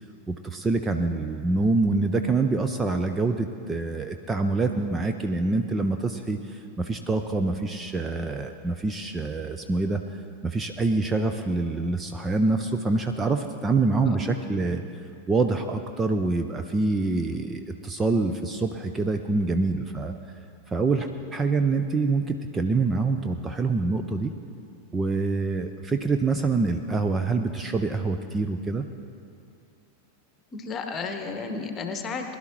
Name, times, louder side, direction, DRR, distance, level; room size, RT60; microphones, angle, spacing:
voice 1, 0.3-14.8 15.3-20.1 20.7-24.3 24.9-28.8, right 3 dB, 15° right, 6 dB, 0.6 m, -26 dB
voice 2, 14.0-14.4 30.5-32.4, left 4 dB, 25° left, 5 dB, 1.2 m, -33 dB
20.5 x 11.5 x 3.1 m, 2.4 s
figure-of-eight pair, 90°, 0 cm